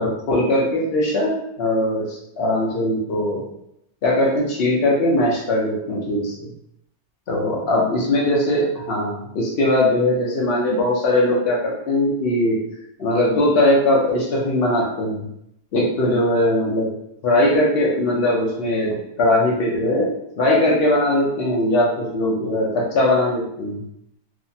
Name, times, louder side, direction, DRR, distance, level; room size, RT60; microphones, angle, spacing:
voice 1, 0.0-3.5 4.0-6.5 7.3-12.6 13.0-15.2 15.7-16.9 17.2-20.1 20.4-23.8, left 1 dB, 90° left, -3 dB, 0.5 m, -20 dB
2.8 x 2.1 x 2.6 m, 0.78 s
omnidirectional pair, 1.8 m